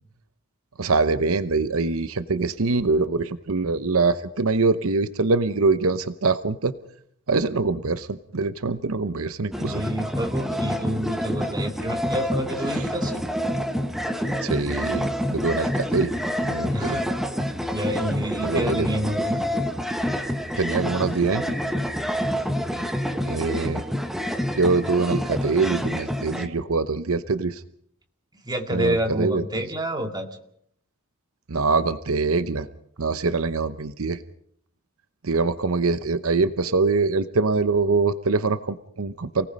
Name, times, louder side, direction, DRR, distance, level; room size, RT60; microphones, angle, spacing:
voice 1, 0.8-6.7 7.3-9.8 14.4-16.1 16.5-17.0 18.4-18.9 20.6-21.5 23.3-23.8 24.6-27.6 28.7-29.4 31.5-32.7 33.0-34.2 35.2-39.5, right 3 dB, 75° right, 12 dB, 0.9 m, -24 dB
sound 1, 9.5-26.5, equal, ahead, 1.1 m, -27 dB
voice 2, 9.5-13.2 16.7-17.0 17.7-19.4 22.7-23.0 28.5-30.3, right 1 dB, 20° right, 4 dB, 2.1 m, -28 dB
28.5 x 18.5 x 5.3 m, 0.67 s
head